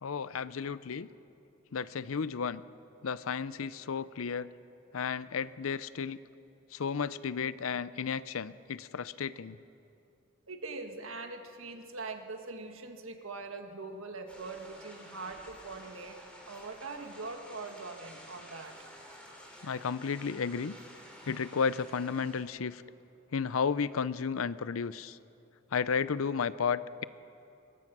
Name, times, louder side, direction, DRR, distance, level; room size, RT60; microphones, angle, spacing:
voice 1, 0.0-1.1 1.7-2.6 3.0-4.5 4.9-6.2 6.7-9.6 19.6-20.8 21.2-22.8 23.3-25.2 25.7-27.0, left 6 dB, 80° left, 17 dB, 0.6 m, -33 dB
voice 2, 10.5-16.2 16.5-18.8, right 3 dB, 75° right, 5 dB, 1.7 m, -42 dB
sound 1, 14.3-22.4, equal, 5° left, 3.8 m, -52 dB
22.5 x 21.0 x 6.1 m, 2.8 s
head